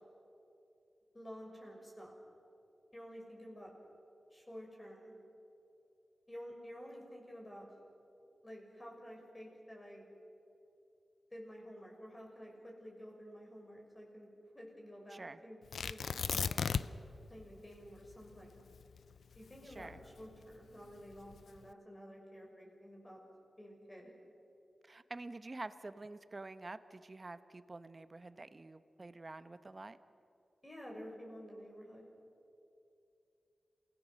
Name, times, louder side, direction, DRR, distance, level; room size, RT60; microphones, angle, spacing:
voice 1, 1.1-2.2 2.9-3.7 4.3-5.1 6.3-7.7 8.4-10.1 11.3-14.3 14.5-16.8 17.3-18.6 19.3-23.2 23.6-24.1 30.6-32.1, equal, 20° left, 0 dB, 6.3 m, -51 dB
Tearing, 15.7-17.1 17.4-17.5 18.0-20.4 21.1-21.6, left 6 dB, 85° left, 0.4 m, -36 dB
voice 2, 19.7-20.0 24.9-30.0, right 2 dB, 40° right, 12 dB, 1.0 m, -48 dB
28.0 x 17.5 x 6.5 m, 2.8 s
cardioid pair, 55°, 0 cm